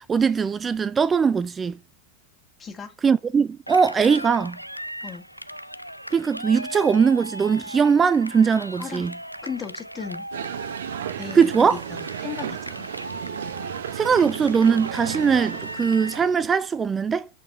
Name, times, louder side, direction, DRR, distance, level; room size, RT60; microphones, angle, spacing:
voice 1, 0.0-1.8 3.0-4.6 6.1-9.1 11.3-11.8 13.9-17.3, right 6 dB, 20° right, 0.4 m, -20 dB
voice 2, 2.6-2.9 5.0-5.2 8.8-9.1 9.4-10.3 11.2-12.9, left 6 dB, 20° left, 1.8 m, -36 dB
Cheering, 3.7-16.3, equal, 90° right, 0.4 m, -38 dB
sound 1, 10.3-16.5, right 10 dB, 60° right, 1.0 m, -34 dB
8.7 x 4.7 x 7.2 m
figure-of-eight pair, 90°, 0 cm